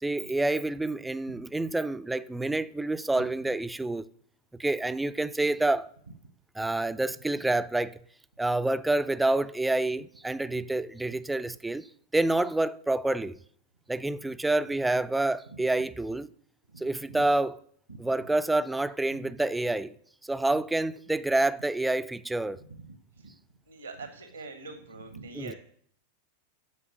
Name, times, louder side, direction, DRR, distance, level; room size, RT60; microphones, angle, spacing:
voice 1, 0.0-4.0 4.6-5.9 6.6-8.0 8.4-11.9 12.1-13.4 13.9-16.3 16.8-17.6 18.0-19.9 20.2-22.6 25.3-25.5, right 2 dB, 5° right, 0.4 m, -28 dB
voice 2, 16.7-17.2 17.9-18.0 19.2-19.3 23.2-23.3 23.7-25.5, right 3 dB, 80° right, 1.1 m, -44 dB
8.3 x 6.7 x 6.2 m
figure-of-eight pair, 90°, 0 cm